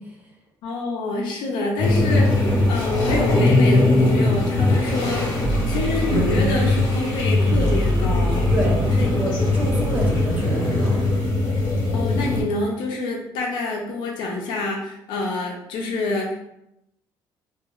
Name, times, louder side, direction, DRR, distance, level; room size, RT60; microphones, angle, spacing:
voice 1, 0.6-8.5 9.0-9.1 11.9-16.5, left 2 dB, 75° left, -1 dB, 0.5 m, -27 dB
sound 1, 1.8-12.4, left 2 dB, 55° left, 0.9 m, -20 dB
sound 2, 5.4-10.2, right 1 dB, 75° right, 0.5 m, -27 dB
voice 2, 8.5-8.8 9.1-11.0, right 1 dB, 20° right, -1 dB, 0.5 m, -28 dB
2.7 x 2.4 x 2.4 m, 0.84 s
cardioid pair, 150°, 8 cm